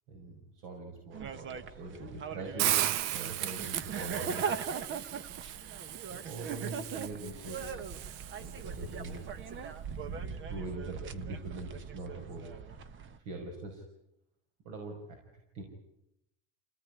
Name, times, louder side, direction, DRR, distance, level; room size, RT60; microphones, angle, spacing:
voice 1, 0.1-2.8 3.1-4.5 6.1-7.9 8.3-9.5 10.5-12.8 13.2-13.8 14.6-15.2 15.5-15.6, right 3 dB, 60° right, 2 dB, 5.9 m, -43 dB
sound 1, 1.1-13.2, right 6 dB, 35° right, 1.4 m, -40 dB
Hiss, 2.6-8.7, right 12 dB, 90° right, 1.2 m, -36 dB
27.5 x 18.5 x 9.8 m, 0.84 s
cardioid pair, 155°, 34 cm